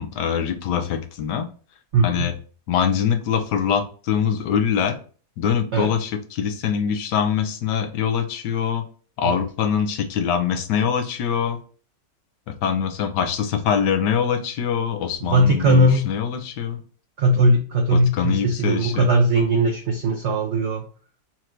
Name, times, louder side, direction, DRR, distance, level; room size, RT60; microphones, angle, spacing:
voice 1, 0.0-1.5 2.0-2.3 2.7-5.0 5.4-8.8 9.2-11.6 12.5-16.8 17.9-19.1, left 8 dB, 75° left, 6 dB, 1.3 m, -23 dB
voice 2, 1.9-2.3 5.7-5.9 9.2-9.4 15.2-16.1 17.2-20.8, right 1 dB, 60° right, 1 dB, 0.7 m, -19 dB
4.5 x 2.5 x 4.4 m, 0.39 s
omnidirectional pair, 1.9 m